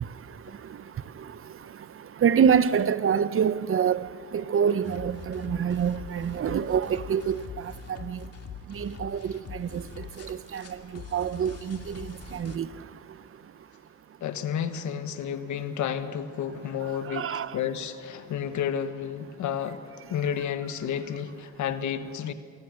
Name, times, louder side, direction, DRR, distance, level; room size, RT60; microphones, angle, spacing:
voice 1, 0.0-8.3 8.7-13.2 17.0-17.6, right 7 dB, 45° right, 0.8 m, -27 dB
sound 1, 4.8-12.6, left 5 dB, 55° left, 2.3 m, -43 dB
voice 2, 14.2-19.8 20.1-22.3, left 8 dB, 75° left, 1.4 m, -31 dB
26.5 x 19.0 x 6.4 m
cardioid pair, 90°, 30 cm